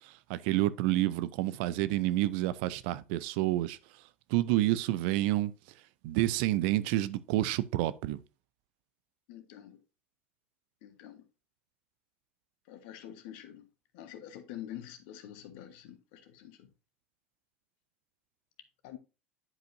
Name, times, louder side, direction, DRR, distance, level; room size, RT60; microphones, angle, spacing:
voice 1, 0.3-3.8 4.3-5.5 6.0-8.2, right 16 dB, 55° right, 0.5 m, -29 dB
voice 2, 9.3-9.8 10.8-11.2 12.7-13.7 13.9-16.7 18.8-19.0, left 11 dB, 55° left, 1.3 m, -46 dB
10.5 x 5.1 x 2.6 m
figure-of-eight pair, 75°, 7 cm